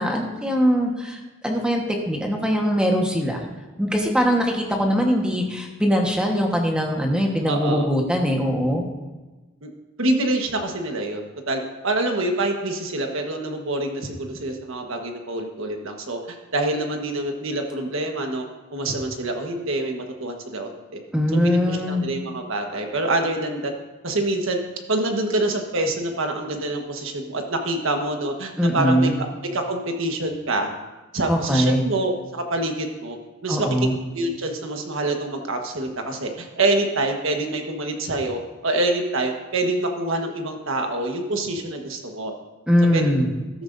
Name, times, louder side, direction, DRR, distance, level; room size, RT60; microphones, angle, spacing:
voice 1, 0.0-3.4 3.8-8.8 21.1-22.1 28.6-29.2 31.3-31.8 33.5-33.9 42.7-43.3, equal, 5° right, 1 dB, 1.4 m, -21 dB
voice 2, 7.5-7.9 9.6-9.7 10.0-18.4 18.7-21.0 21.4-23.7 24.0-24.6 24.9-29.3 29.5-30.7 31.1-33.2 33.4-33.7 34.1-42.3 42.9-43.1, right 2 dB, 65° right, 3 dB, 1.5 m, -26 dB
13.5 x 12.5 x 2.7 m, 1.2 s
head